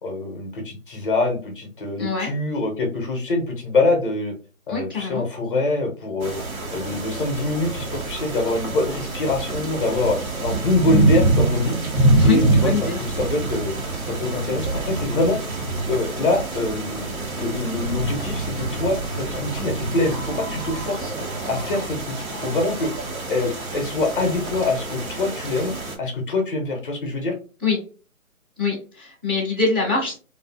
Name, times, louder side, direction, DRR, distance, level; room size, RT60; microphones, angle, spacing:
voice 1, 0.0-4.3 4.7-6.4 6.7-11.8 12.2-12.7 13.0-13.8 14.1-15.4 15.9-21.1 21.5-22.9 23.3-27.4, left 2 dB, 40° left, 3 dB, 0.6 m, -24 dB
voice 2, 2.0-2.3 4.7-5.2 12.1-13.0 27.6-27.8 28.6-30.2, left 4 dB, 15° right, -7 dB, 0.6 m, -24 dB
sound 1, 6.2-25.9, right 2 dB, 80° right, 1.1 m, -25 dB
2.6 x 2.5 x 2.3 m, 0.36 s
hypercardioid pair, 150°, 42 cm